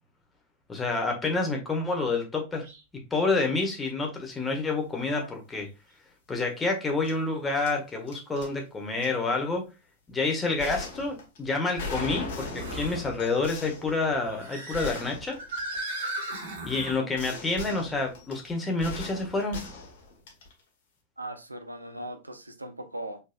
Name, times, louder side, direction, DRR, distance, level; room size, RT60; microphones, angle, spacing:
voice 1, 0.7-2.7 3.1-5.7 6.3-9.7 10.1-15.4 16.6-19.7, left 3 dB, 15° left, 1.6 m, -28 dB
sound 1, 2.6-2.8 3.4-3.5 5.6-5.7 9.2-9.3 12.5-13.1 14.0-17.0, right 1 dB, 55° right, 1.6 m, -37 dB
sound 2, 4.4-4.6 4.9-5.3 7.0-7.1 7.6-8.5 9.0-9.1 10.6-16.2 17.1-20.6, left 3 dB, 55° left, 1.6 m, -39 dB
voice 2, 21.2-23.2, right 1 dB, 85° right, 0.7 m, -39 dB
5.0 x 4.1 x 2.4 m
figure-of-eight pair, 90°, 0 cm